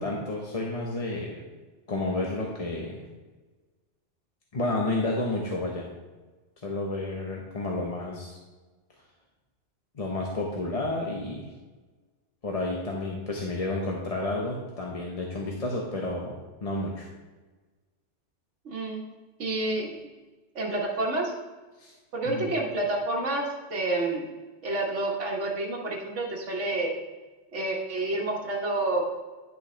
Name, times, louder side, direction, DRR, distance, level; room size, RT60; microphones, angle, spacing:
voice 1, 0.0-1.4 1.9-3.0 4.5-5.9 6.6-8.4 9.9-11.5 12.4-16.3 16.6-17.1 21.8-21.9 22.3-22.5, left 2 dB, 35° left, -2 dB, 1.0 m, -31 dB
voice 2, 18.6-19.0 19.4-19.9 20.5-21.3 22.1-24.3 24.6-26.9 27.5-29.1, right 2 dB, 90° right, -2 dB, 1.6 m, -29 dB
10.5 x 6.4 x 3.3 m, 1.2 s
omnidirectional pair, 1.2 m